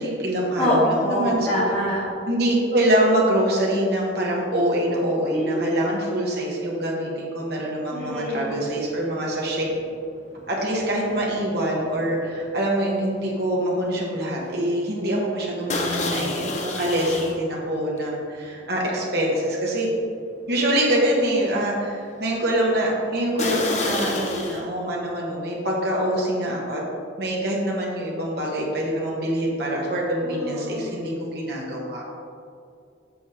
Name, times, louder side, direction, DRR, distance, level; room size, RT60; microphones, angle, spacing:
voice 1, 0.0-1.6 2.3-9.6 10.5-19.9 20.5-26.8 27.2-32.0, right 1 dB, 60° right, -3 dB, 1.6 m, -24 dB
voice 2, 0.6-2.0 5.3-5.6 7.9-8.6 30.2-30.8, equal, 15° left, -12 dB, 1.8 m, -24 dB
sound 1, 8.5-8.8 9.0-13.7 13.9-14.2 14.6-14.7 15.7-17.4 18.0-18.1 18.7-18.8 19.3-19.4 23.4-24.6, left 2 dB, 40° left, 0.8 m, -29 dB
7.8 x 6.2 x 3.8 m, 2.4 s
head